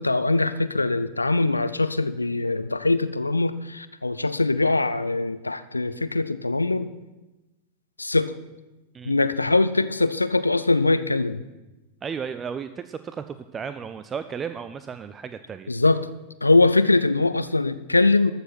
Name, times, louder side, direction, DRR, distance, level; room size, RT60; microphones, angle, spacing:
voice 1, 0.0-6.9 8.0-8.3 9.0-11.4 15.7-16.0 16.4-18.3, left 3 dB, 80° left, 14 dB, 0.4 m, -22 dB
voice 2, 8.9-9.3 12.0-15.7, right 6 dB, 20° right, 11 dB, 0.4 m, -34 dB
13.5 x 6.7 x 6.0 m, 1.1 s
figure-of-eight pair, 90°, 0 cm